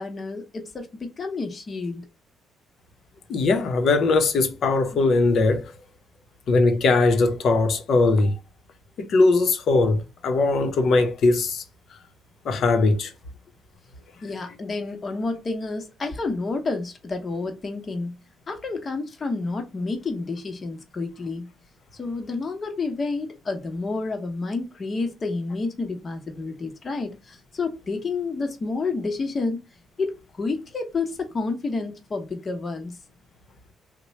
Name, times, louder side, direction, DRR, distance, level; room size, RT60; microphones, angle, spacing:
voice 1, 0.0-2.1 4.9-5.0 14.2-18.2 18.5-21.5 21.9-29.6 30.0-33.0, left 3 dB, 40° left, 1.0 m, -30 dB
voice 2, 3.3-5.7 6.5-8.3 9.0-11.6 12.4-13.1, left 3 dB, 65° left, 0.8 m, -20 dB
3.0 x 2.2 x 4.1 m
cardioid pair, 90°, 0 cm